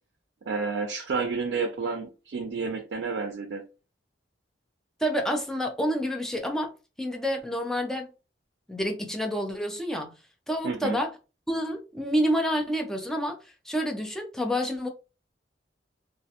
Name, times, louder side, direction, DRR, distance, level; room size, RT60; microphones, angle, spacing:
voice 1, 0.5-3.6 10.6-11.0, right 4 dB, 80° right, 0.4 m, -30 dB
voice 2, 5.0-6.7 7.0-8.1 8.7-10.1 10.5-11.1 11.5-13.4 13.7-14.9, equal, 5° left, 0.4 m, -28 dB
2.4 x 2.1 x 2.7 m
head